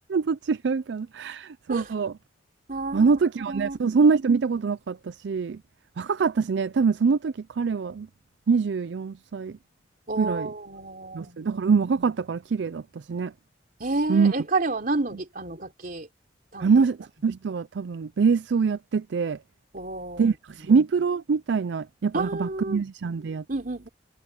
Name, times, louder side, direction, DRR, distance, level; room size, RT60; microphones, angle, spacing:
voice 1, 0.1-2.2 2.9-5.6 6.0-8.1 8.5-9.6 10.2-10.5 11.1-12.8 13.1-13.3 14.1-14.3 16.6-17.0 17.2-19.4 20.2-23.4, right 5 dB, 65° right, 0.4 m, -24 dB
voice 2, 2.7-3.8 10.1-11.6 13.8-16.1 16.5-16.7 19.7-20.3 22.1-22.8 23.5-23.9, right 3 dB, 50° right, 3.5 m, -30 dB
head